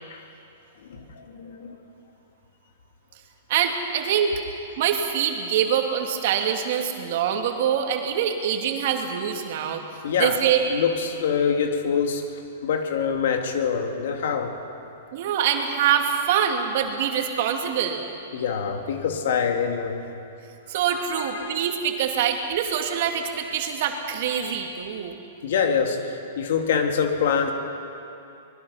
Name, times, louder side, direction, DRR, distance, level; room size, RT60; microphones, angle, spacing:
voice 1, 0.8-1.8 10.0-10.4 10.7-12.3 12.6-14.5 18.3-20.1 20.9-21.7 24.4-24.5 25.4-27.5, left 6 dB, 70° left, 4 dB, 2.7 m, -25 dB
voice 2, 3.5-4.4 4.8-9.8 10.2-10.6 15.1-18.0 20.7-25.2, right 8 dB, 60° right, 3 dB, 2.5 m, -24 dB
24.5 x 21.0 x 5.7 m, 2.7 s
hypercardioid pair, 125°, 0 cm